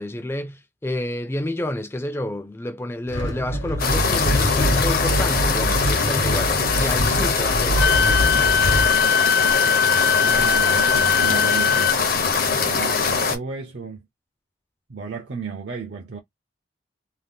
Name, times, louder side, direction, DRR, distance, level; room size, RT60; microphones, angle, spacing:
voice 1, 0.0-9.0, left 1 dB, 15° left, 0.4 m, -30 dB
sound 1, 3.1-8.9, equal, 70° left, 1.0 m, -24 dB
sound 2, 3.8-13.4, left 5 dB, 50° left, 0.7 m, -22 dB
Wind instrument woodwind instrument, 7.8-12.0, left 6 dB, 90° left, 0.4 m, -20 dB
voice 2, 10.2-12.0 12.6-14.0 14.9-16.2, right 5 dB, 60° right, 0.5 m, -33 dB
2.8 x 2.1 x 3.4 m
head